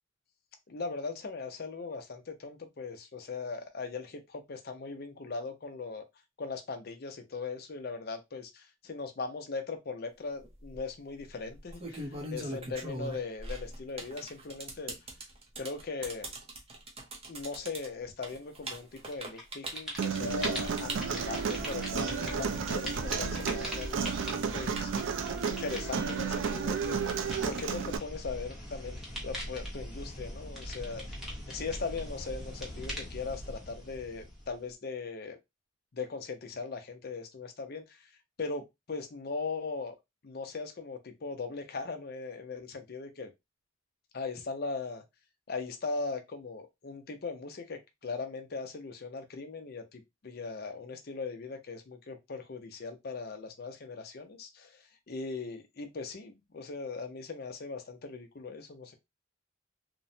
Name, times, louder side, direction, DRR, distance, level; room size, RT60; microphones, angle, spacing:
voice 1, 0.7-6.0 6.4-15.1 15.6-16.4 17.3-24.1 24.5-24.9 25.4-35.4 35.9-39.9 40.2-43.3 44.1-45.0 45.5-58.9, left 4 dB, 50° left, 0.6 m, -39 dB
sound 1, 10.4-10.8 11.5-22.9 23.2-25.3, right 2 dB, 30° right, 0.6 m, -41 dB
sound 2, 19.0-19.4 19.7-34.7, equal, ahead, 0.8 m, -41 dB
Human voice, 20.0-28.0, right 6 dB, 70° right, 0.4 m, -33 dB
2.9 x 2.1 x 2.6 m
head